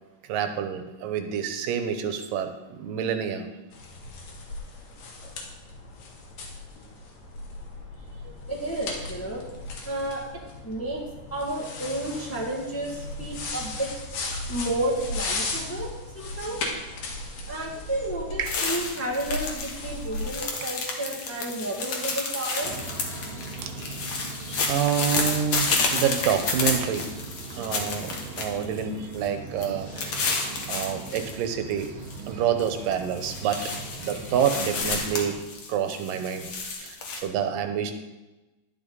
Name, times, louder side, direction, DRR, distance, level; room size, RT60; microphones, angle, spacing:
voice 1, 0.3-3.5 8.2-8.4 18.4-18.6 23.6-23.7 24.7-27.1 27.5-30.3 30.7-31.9 32.3-35.4 35.7-36.5 36.8-37.9, right 8 dB, 90° right, 7 dB, 2.7 m, -28 dB
sound 1, 3.7-20.5, left 3 dB, 85° left, 3.5 m, -36 dB
voice 2, 8.5-9.4 9.8-10.2 10.6-11.0 11.3-13.9 14.2-15.9 16.1-16.6 17.5-22.7, right 1 dB, 10° left, -3 dB, 1.0 m, -31 dB
sound 2, 18.4-19.8 20.0-28.8 29.1-29.3 29.6-31.3 31.7-32.2 32.6-37.2, left 4 dB, 50° left, 1.9 m, -30 dB
sound 3, 22.6-35.4, right 3 dB, 55° right, 2.3 m, -40 dB
11.5 x 11.0 x 4.0 m, 1.1 s
omnidirectional pair, 3.8 m